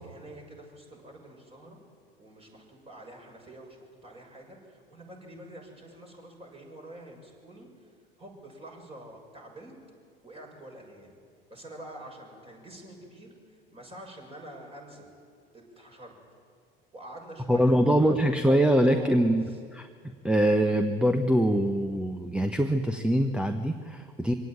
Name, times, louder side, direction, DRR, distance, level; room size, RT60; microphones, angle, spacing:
voice 1, 0.0-1.8 2.2-7.7 8.2-9.7 10.2-11.1 11.5-15.1 15.5-16.1 16.9-18.1 18.9-19.2 19.5-19.6, right 1 dB, 20° right, 1 dB, 6.6 m, -46 dB
voice 2, 17.5-19.4 19.7-19.9 20.2-24.3, equal, 5° right, 7 dB, 1.2 m, -23 dB
25.0 x 17.5 x 9.0 m, 2.1 s
figure-of-eight pair, 75°, 29 cm